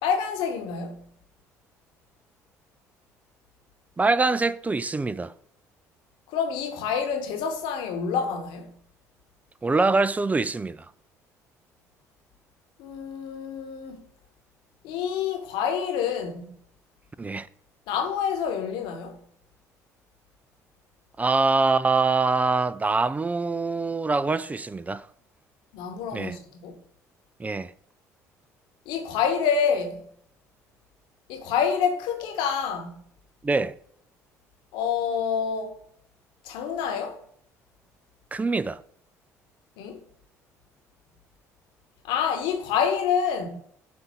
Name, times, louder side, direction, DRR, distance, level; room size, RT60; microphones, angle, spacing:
voice 1, 0.0-1.0 6.3-8.7 12.8-14.0 14.8-16.5 17.9-19.1 25.7-26.8 28.9-30.0 31.3-33.0 34.7-35.8 36.4-37.2 39.8-40.0 42.1-43.6, left 7 dB, 70° left, 1.2 m, -27 dB
voice 2, 4.0-5.3 9.6-10.9 17.2-17.5 21.2-25.1 26.1-26.4 27.4-27.7 33.4-33.7 38.3-38.8, right 3 dB, 20° right, 0.4 m, -24 dB
7.7 x 2.7 x 5.8 m
hypercardioid pair, 60°, 8 cm